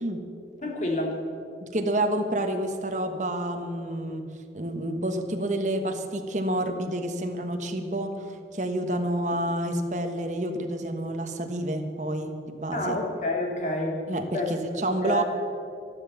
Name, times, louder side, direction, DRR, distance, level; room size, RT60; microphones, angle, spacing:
voice 1, 0.6-1.2 12.7-14.0 14.3-14.5 15.0-15.2, left 1 dB, 40° left, 1 dB, 2.4 m, -28 dB
voice 2, 1.6-4.3 4.5-8.1 8.5-13.0 14.1-15.2, right 1 dB, 40° right, 5 dB, 1.3 m, -29 dB
13.0 x 11.5 x 7.2 m, 2.5 s
head